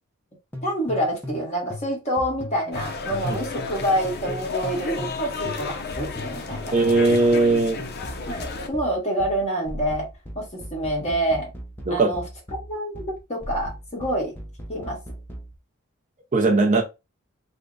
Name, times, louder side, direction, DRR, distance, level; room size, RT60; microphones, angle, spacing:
sound 1, 0.5-5.2 5.5-15.5, left 1 dB, 10° left, 0.7 m, -38 dB
voice 1, 0.6-6.7 8.3-10.1 10.3-11.5 11.9-12.2 12.7-13.0 13.3-14.3 14.7-15.0, right 1 dB, 30° left, 1.6 m, -27 dB
sound 2, 2.7-8.7, left 3 dB, 50° left, 0.6 m, -32 dB
voice 2, 6.7-7.8 11.9-12.1 16.3-16.8, right 3 dB, 35° right, 0.6 m, -19 dB
3.3 x 2.2 x 3.8 m
head